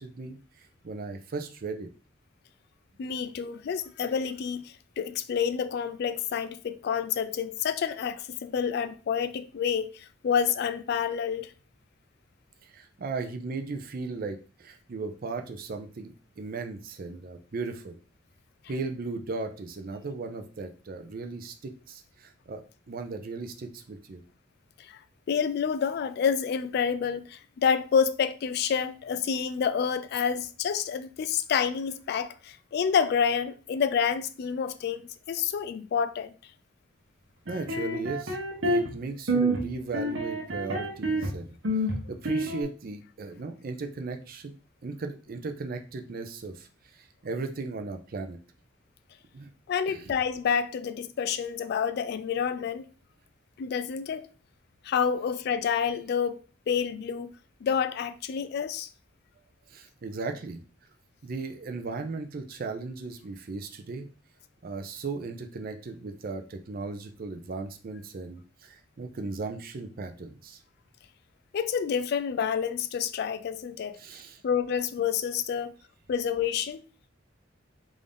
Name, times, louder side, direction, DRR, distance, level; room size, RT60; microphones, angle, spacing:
voice 1, 0.0-1.9 12.6-18.0 18.7-24.2 37.5-38.4 38.6-41.5 42.1-44.5 44.8-46.7 46.9-48.4 49.3-49.5 49.9-50.1 59.7-60.6 61.2-64.1 64.6-70.6 74.0-74.4, right 3 dB, 50° right, 0.5 m, -37 dB
voice 2, 3.0-11.5 24.8-25.0 25.3-36.3 49.7-52.9 53.6-54.3 54.8-56.4 56.7-57.3 57.6-58.9 71.5-74.0 74.4-75.7 76.1-76.8, left 7 dB, 55° left, 0.3 m, -28 dB
sound 1, 37.5-38.9 39.3-39.6 39.9-41.3 41.6-42.6, right 1 dB, 80° right, 0.9 m, -28 dB
3.6 x 2.6 x 3.4 m
head